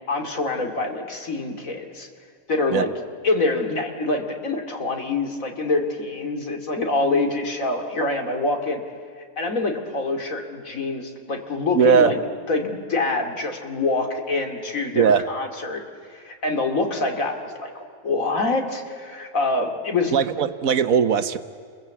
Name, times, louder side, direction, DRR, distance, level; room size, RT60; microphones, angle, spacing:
voice 1, 0.1-2.1 2.5-2.9 3.2-8.8 9.4-12.2 12.5-15.8 16.1-20.1, left 3 dB, 65° left, 4 dB, 2.9 m, -25 dB
voice 2, 11.7-12.1 14.9-15.2 20.1-21.4, right 7 dB, 70° right, 11 dB, 1.3 m, -19 dB
29.5 x 22.0 x 8.3 m, 2.3 s
omnidirectional pair, 1.6 m